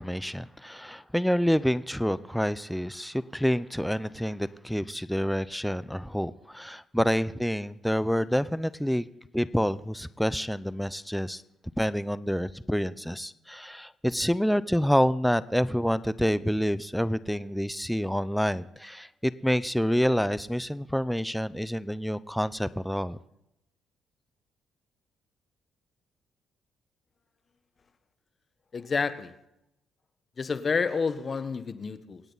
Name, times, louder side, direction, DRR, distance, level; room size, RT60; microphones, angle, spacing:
voice 1, 0.0-9.1 9.3-11.4 11.8-23.2, equal, ahead, 16 dB, 0.5 m, -28 dB
voice 2, 28.7-29.3 30.4-32.2, left 5 dB, 40° left, 12 dB, 1.2 m, -29 dB
26.0 x 9.1 x 4.0 m, 0.84 s
supercardioid pair, 75°, 0 cm